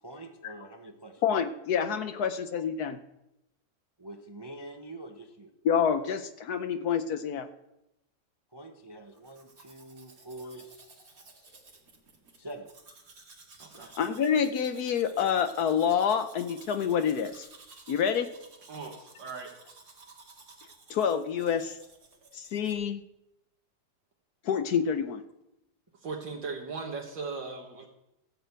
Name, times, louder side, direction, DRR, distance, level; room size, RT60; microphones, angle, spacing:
voice 1, 0.0-1.2 4.0-5.5 8.5-11.1 11.3-11.6 12.4-12.7, right 1 dB, 25° right, 4 dB, 0.5 m, -45 dB
voice 2, 1.2-3.0 5.6-7.5 14.0-17.5 17.9-18.3 20.9-21.8 22.3-23.0 24.4-25.2, left 7 dB, 65° left, 10 dB, 1.1 m, -27 dB
Domestic sounds home sounds, 9.1-22.7, right 3 dB, 50° right, 2.3 m, -54 dB
voice 3, 13.6-13.9 18.7-19.5 26.0-27.9, right 4 dB, 70° right, 0 dB, 2.0 m, -38 dB
13.5 x 6.6 x 8.1 m, 0.87 s
omnidirectional pair, 2.0 m